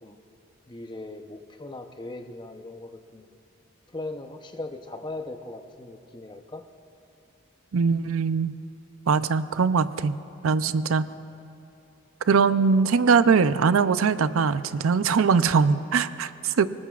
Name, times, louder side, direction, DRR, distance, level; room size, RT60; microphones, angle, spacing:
voice 1, 0.7-3.3 3.9-6.6 10.8-10.9, left 2 dB, 20° left, 6 dB, 0.7 m, -39 dB
voice 2, 7.7-8.5 9.1-10.2 10.4-11.1 12.3-16.7, right 5 dB, 80° right, 13 dB, 0.5 m, -21 dB
29.5 x 19.5 x 2.4 m, 2.7 s
head